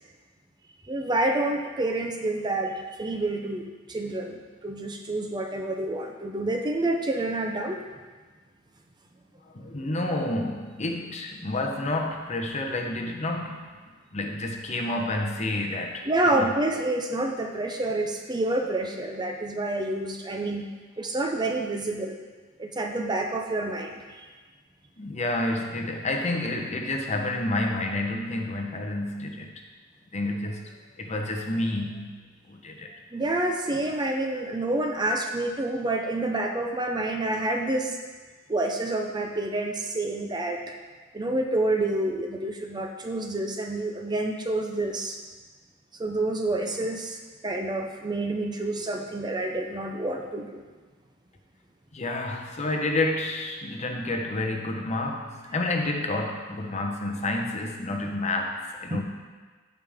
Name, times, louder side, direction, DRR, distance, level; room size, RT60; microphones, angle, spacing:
voice 1, 0.9-7.8 16.1-20.7 21.0-22.1 22.6-24.3 33.1-38.0 38.5-40.6 41.1-45.2 46.0-47.2 47.4-50.6 58.9-59.0, right 2 dB, 20° right, 3 dB, 0.6 m, -28 dB
voice 2, 9.5-13.7 14.1-16.1 16.3-16.5 25.0-29.6 30.1-32.1 32.5-32.9 51.9-59.0, left 2 dB, 35° left, 2 dB, 0.9 m, -29 dB
14.5 x 5.1 x 3.5 m, 1.4 s
head